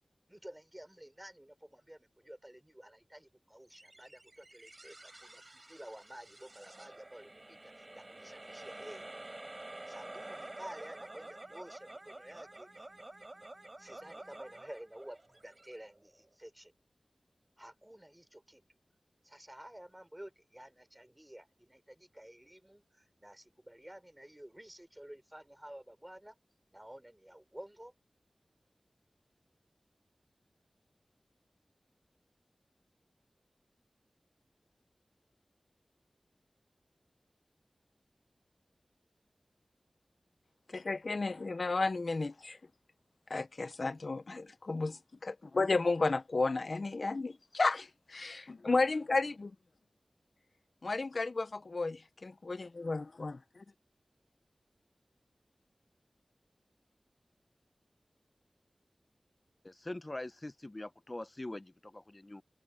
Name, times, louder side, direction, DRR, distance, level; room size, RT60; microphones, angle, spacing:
voice 1, 0.3-9.1 9.9-12.9 13.8-15.2 15.4-16.7 17.6-18.6 19.2-26.4 26.7-27.9, right 1 dB, 15° right, 5.0 m, -52 dB
sound 1, 3.7-16.3, right 2 dB, 35° right, 4.8 m, -50 dB
voice 2, 40.7-42.6 43.3-49.5 50.8-53.6, left 3 dB, 65° left, 0.8 m, -33 dB
voice 3, 59.6-62.4, left 1 dB, 35° left, 0.7 m, -43 dB
wide cardioid pair, 50°, 0 cm